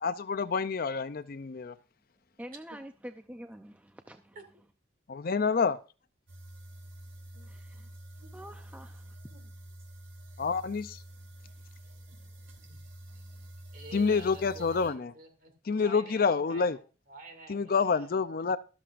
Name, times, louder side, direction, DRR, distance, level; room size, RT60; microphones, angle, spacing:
voice 1, 0.0-1.8 5.1-5.8 10.4-11.0 13.9-15.1 15.7-16.8 17.5-18.6, left 5 dB, 50° left, 0.5 m, -28 dB
voice 2, 2.4-4.4 7.5-7.9 8.3-9.1 12.2-12.3 13.1-13.5, equal, 10° right, 0.5 m, -47 dB
sound 1, 6.3-14.9, right 1 dB, 85° right, 2.8 m, -48 dB
voice 3, 7.3-7.9 8.2-8.4 9.3-9.7 12.7-12.8 13.7-18.1, right 2 dB, 50° right, 2.4 m, -50 dB
13.5 x 13.0 x 2.5 m
head